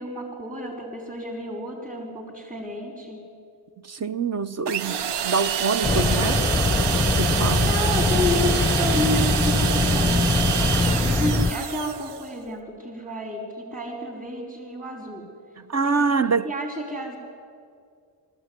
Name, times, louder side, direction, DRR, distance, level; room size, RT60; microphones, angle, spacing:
voice 1, 0.0-3.2 7.6-10.4 11.0-15.3 15.8-16.1 16.4-17.2, equal, 20° right, 5.0 m, -30 dB
voice 2, 3.9-6.5 7.2-7.7 15.7-16.5, right 4 dB, 40° right, 0.8 m, -25 dB
sound 1, 4.7-12.3, right 9 dB, 80° right, 0.7 m, -27 dB
sound 2, 5.8-11.5, left 3 dB, 5° left, 0.7 m, -22 dB
19.5 x 15.5 x 9.8 m
cardioid pair, 70°, 41 cm